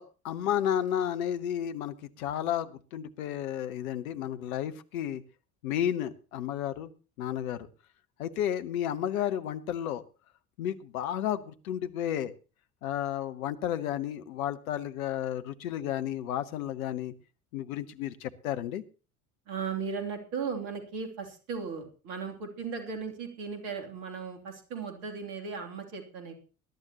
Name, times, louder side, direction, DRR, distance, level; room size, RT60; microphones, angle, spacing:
voice 1, 0.0-5.2 5.6-6.9 7.2-7.7 8.2-10.0 10.6-12.3 12.8-17.1 17.5-18.8, left 10 dB, 65° left, 11 dB, 1.0 m, -32 dB
voice 2, 19.5-26.3, right 5 dB, 60° right, 4 dB, 3.0 m, -36 dB
21.0 x 11.5 x 3.0 m, 0.35 s
figure-of-eight pair, 60°, 44 cm